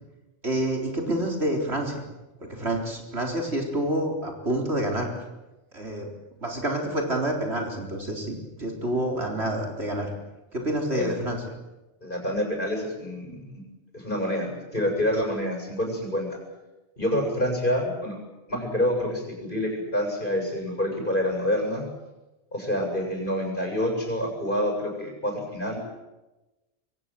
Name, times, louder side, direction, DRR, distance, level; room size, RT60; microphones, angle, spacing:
voice 1, 0.4-2.0 2.4-5.1 5.7-6.1 6.4-10.1 10.5-11.4, right 1 dB, 60° right, 1 dB, 4.6 m, -28 dB
voice 2, 12.0-13.4 13.9-16.4 17.0-18.2 18.5-21.8 22.5-25.8, left 1 dB, 45° left, 2 dB, 7.6 m, -27 dB
26.5 x 23.0 x 7.7 m, 1.1 s
omnidirectional pair, 1.2 m